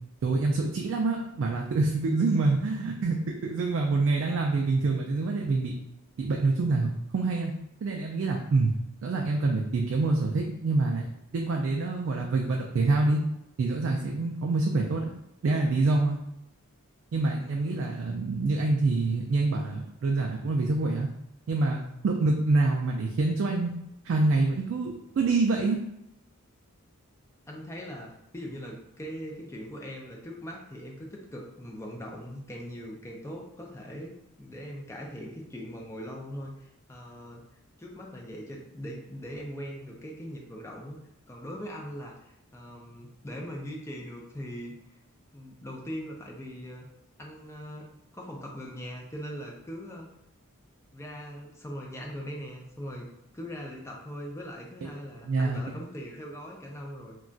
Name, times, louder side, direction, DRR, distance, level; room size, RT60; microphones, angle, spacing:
voice 1, 0.2-5.7 6.2-7.5 7.8-8.7 9.0-11.1 11.3-13.2 13.6-15.1 15.4-16.2 17.1-21.1 21.5-23.7 24.1-25.8 55.3-55.6, right 3 dB, 60° right, 1 dB, 0.3 m, -26 dB
voice 2, 17.4-17.8 27.5-37.4 37.8-41.0 41.3-45.0 45.3-46.9 47.2-47.9 48.1-50.1 50.9-53.1 53.3-57.2, equal, 15° left, -1 dB, 0.4 m, -40 dB
2.3 x 2.3 x 3.8 m, 0.82 s
head